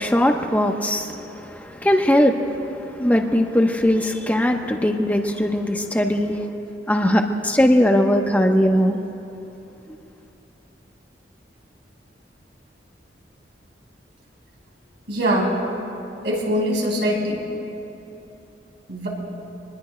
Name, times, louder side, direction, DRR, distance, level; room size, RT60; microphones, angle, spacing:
voice 1, 0.0-6.5 6.9-9.0, equal, 10° left, 3 dB, 0.9 m, -20 dB
voice 2, 15.1-15.6 16.2-17.4 18.9-19.1, equal, 80° right, -3 dB, 4.5 m, -22 dB
26.0 x 20.5 x 2.2 m, 3.0 s
head